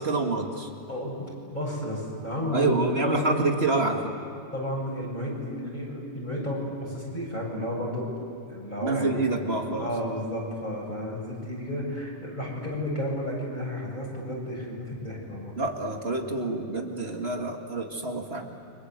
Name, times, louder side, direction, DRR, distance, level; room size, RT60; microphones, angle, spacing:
voice 1, 0.0-0.7 2.5-4.1 8.8-9.9 15.6-18.5, right 3 dB, 60° right, 2 dB, 2.3 m, -27 dB
voice 2, 0.9-3.4 3.7-3.8 4.5-8.1 8.5-9.3 9.8-15.5, equal, 40° left, -3 dB, 7.8 m, -32 dB
29.5 x 25.0 x 8.0 m, 2.7 s
omnidirectional pair, 1.2 m